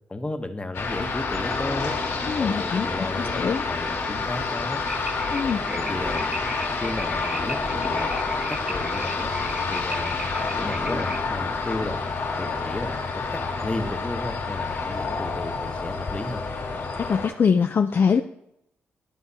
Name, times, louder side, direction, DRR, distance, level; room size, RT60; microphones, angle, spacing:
voice 1, 0.1-1.9 2.4-4.8 5.7-6.2 6.8-9.3 9.7-10.2 10.6-12.0 12.4-13.0 13.6-16.4, left 2 dB, 20° left, 6 dB, 0.9 m, -33 dB
sound 1, 0.7-17.3, left 4 dB, 80° left, 1.9 m, -28 dB
voice 2, 2.3-2.9 3.1-3.6 5.3-5.6 17.0-18.2, left 6 dB, 45° left, 7 dB, 0.3 m, -23 dB
sound 2, 4.9-11.2, right 1 dB, 20° right, 0.8 m, -37 dB
11.5 x 4.6 x 2.8 m, 0.80 s
supercardioid pair, 50°, 5 cm